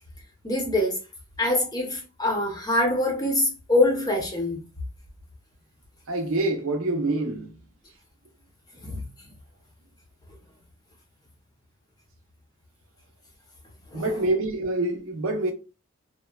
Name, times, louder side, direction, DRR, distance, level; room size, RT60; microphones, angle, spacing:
voice 1, 0.4-1.0 1.4-4.6 8.8-9.0 13.9-14.2, left 1 dB, 20° left, 0.6 m, -24 dB
voice 2, 6.1-7.6 13.9-15.5, right 2 dB, 85° right, 0.6 m, -26 dB
3.0 x 2.1 x 2.2 m
head